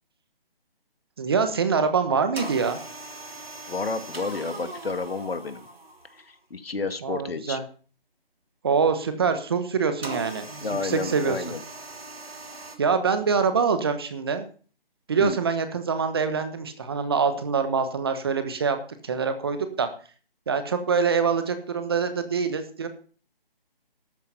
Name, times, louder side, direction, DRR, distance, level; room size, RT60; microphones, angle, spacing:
voice 1, 1.2-2.8 7.0-7.6 8.6-11.4 12.8-14.5 15.1-18.8 19.0-19.9 20.5-22.9, right 5 dB, 25° right, 9 dB, 1.2 m, -25 dB
sound 1, 2.4-6.3 10.0-12.8, right 2 dB, 85° right, 3.5 m, -40 dB
voice 2, 3.7-5.7 6.1-7.6 10.6-11.6 15.2-15.4, left 4 dB, 85° left, 9 dB, 2.1 m, -31 dB
12.5 x 9.6 x 5.6 m, 0.40 s
hypercardioid pair, 170°, 29 cm